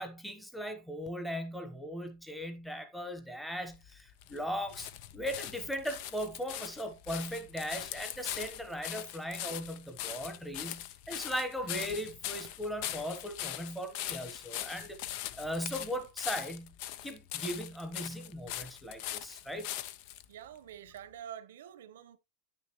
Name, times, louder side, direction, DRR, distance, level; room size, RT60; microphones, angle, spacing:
voice 1, 0.0-16.7 17.0-19.7, equal, ahead, 1.1 m, -38 dB
sound 1, 3.7-20.3 21.0-21.1, left 13 dB, 40° left, 0.6 m, -41 dB
voice 2, 20.3-22.2, right 10 dB, 85° right, 1.1 m, -47 dB
9.6 x 6.6 x 3.1 m
supercardioid pair, 175°, 0 cm